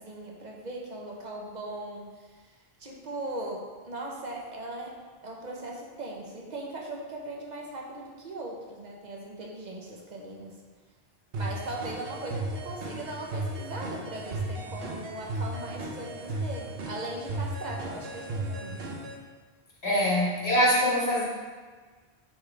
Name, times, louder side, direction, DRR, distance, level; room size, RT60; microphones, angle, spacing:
voice 1, 0.0-2.5 2.8-5.0 5.2-10.6 11.3-18.8 19.8-20.0, right 2 dB, 45° right, -1 dB, 1.0 m, -39 dB
sound 1, 11.3-19.2, right 2 dB, 65° right, 0.9 m, -35 dB
voice 2, 19.8-21.2, equal, 75° left, -5 dB, 1.8 m, -23 dB
8.8 x 3.7 x 3.4 m, 1.4 s
omnidirectional pair, 1.1 m